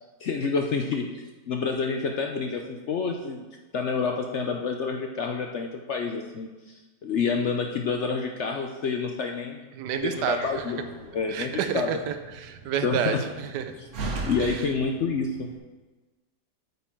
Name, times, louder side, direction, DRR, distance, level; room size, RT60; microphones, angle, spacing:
voice 1, 0.2-1.1 1.5-3.4 3.7-9.6 9.9-11.9 12.8-13.2 13.8-13.9 14.3-15.5, left 5 dB, 65° left, 3 dB, 0.7 m, -28 dB
voice 2, 9.8-10.6 11.3-13.6 14.4-14.6, right 8 dB, 90° right, 8 dB, 1.3 m, -30 dB
Slam, 10.0-15.6, right 3 dB, 55° right, 1.1 m, -39 dB
8.5 x 6.9 x 4.5 m, 1.2 s
omnidirectional pair, 1.8 m